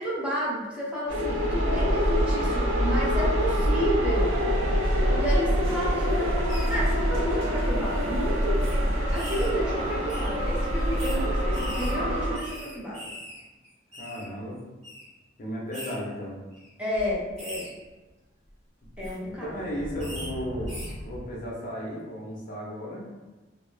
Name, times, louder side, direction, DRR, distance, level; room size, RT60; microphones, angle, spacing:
voice 1, 0.0-4.4 5.1-8.7 9.0-13.1 16.8-17.7 19.0-19.5, equal, 5° right, -7 dB, 0.5 m, -31 dB
sound 1, 1.1-12.4, equal, 90° right, 0.5 m, -25 dB
sound 2, 6.5-6.7 7.5-7.6 7.9-8.0 8.6-8.8 9.1-9.5 10.1-10.3 11.0-11.2 11.5-13.4 13.6-14.2 14.8-15.0 15.7-16.0 16.5-16.7 17.4-17.7 18.8-19.2 20.0-20.3 20.7-20.9, equal, 35° right, 1.1 m, -41 dB
voice 2, 14.0-14.6 15.4-16.4 19.4-23.0, equal, 45° left, -3 dB, 0.6 m, -35 dB
sound 3, 16.9-17.9 18.5-18.6 19.1-21.6, equal, 70° right, 1.0 m, -40 dB
2.2 x 2.0 x 3.1 m, 1.2 s
head